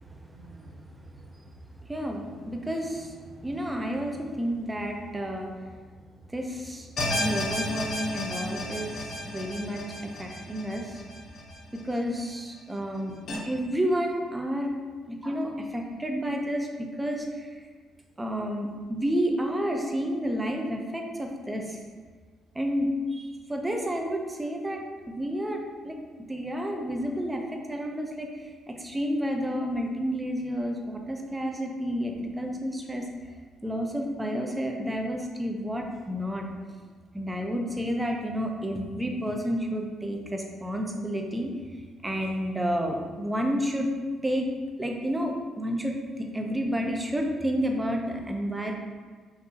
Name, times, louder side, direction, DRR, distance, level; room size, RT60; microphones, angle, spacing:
voice 1, 0.0-1.5 1.8-5.5 6.3-6.9 7.1-11.0 11.7-13.1 13.4-14.7 15.1-17.5 18.2-21.8 22.5-26.0 26.3-33.1 33.6-36.5 37.1-41.5 42.0-43.9 44.2-44.5 44.8-48.7, equal, 15° right, 2 dB, 0.6 m, -30 dB
sound 1, 7.0-12.2 12.6-12.7 13.3-13.4, left 1 dB, 65° left, 1.0 m, -32 dB
5.8 x 2.7 x 2.8 m, 1.5 s
cardioid pair, 90°, 0 cm